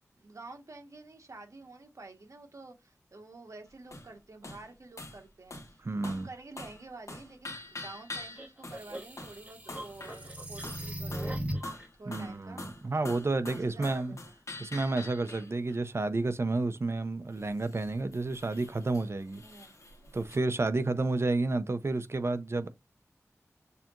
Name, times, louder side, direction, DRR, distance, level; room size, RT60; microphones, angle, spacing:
voice 1, 0.1-11.6 12.0-12.6 13.5-14.3 19.4-19.8 20.9-21.2, right 3 dB, 70° right, 1.4 m, -49 dB
sound 1, 3.9-4.1 4.4-4.7 5.0-5.2 5.5-5.7 6.0-6.3 6.6-6.8 7.1-8.9 9.2-9.4 9.7-10.3 10.6-11.4 11.6-15.8 17.3-20.4, left 2 dB, 70° left, 1.4 m, -45 dB
voice 2, 5.8-6.3 12.1-14.2 14.6-19.4 20.1-22.7, right 2 dB, 50° right, 0.6 m, -30 dB
sound 2, 8.4-11.9, equal, 25° right, 1.7 m, -38 dB
6.8 x 2.9 x 2.5 m
wide cardioid pair, 55°, 6 cm